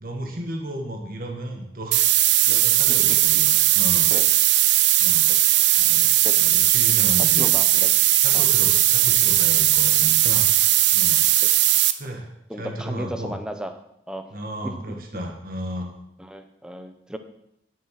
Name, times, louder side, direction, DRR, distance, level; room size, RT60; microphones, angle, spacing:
voice 1, 0.0-2.0 2.5-4.1 5.0-5.3 5.8-7.5 7.7-7.8 8.2-11.2 12.0-12.3 12.6-13.3 14.3-15.9, right 1 dB, 55° right, 1 dB, 1.6 m, -34 dB
sound 1, 1.9-11.9, right 14 dB, 90° right, 0.6 m, -18 dB
voice 2, 2.5-3.0 4.1-4.3 5.3-5.4 6.2-6.3 7.3-7.9 8.3-8.5 11.4-11.5 12.5-13.7 14.1-14.2 16.2-17.2, equal, 5° right, 7 dB, 0.8 m, -35 dB
10.0 x 7.5 x 5.9 m, 0.78 s
head